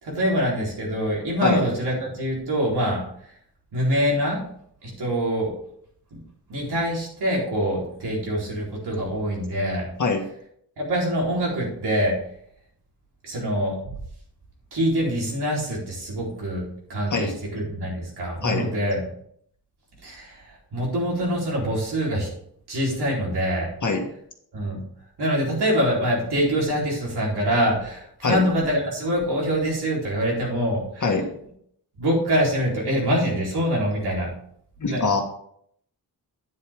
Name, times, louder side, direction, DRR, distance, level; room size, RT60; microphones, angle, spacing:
voice 1, 0.0-3.0 3.7-4.4 4.8-5.5 6.1-6.2 6.5-9.9 10.8-12.1 13.2-13.9 14.7-16.6 16.9-19.0 20.0-22.3 22.7-23.7 24.5-24.8 25.2-31.0 32.0-34.3 34.9-35.1, equal, 80° right, -3 dB, 4.1 m, -24 dB
voice 2, 31.0-31.4 34.8-35.2, left 4 dB, 50° left, 3 dB, 1.8 m, -23 dB
9.5 x 8.3 x 3.7 m, 0.67 s
wide cardioid pair, 90°, 39 cm